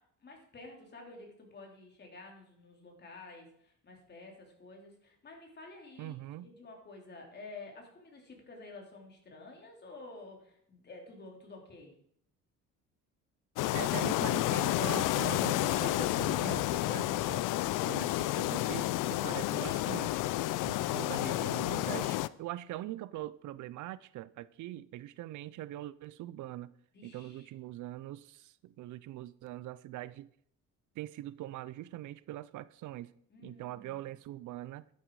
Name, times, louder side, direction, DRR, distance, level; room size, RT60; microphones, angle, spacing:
voice 1, 0.2-12.0 26.9-27.5 33.3-34.0, left 3 dB, 35° left, 3.4 m, -51 dB
voice 2, 6.0-6.5 13.7-20.2 20.7-26.7 27.0-30.3 31.0-33.1 33.4-34.8, right 15 dB, 70° right, 0.6 m, -42 dB
sound 1, 13.6-22.3, left 16 dB, 85° left, 0.5 m, -30 dB
11.5 x 9.9 x 4.8 m
cardioid pair, 135°, 31 cm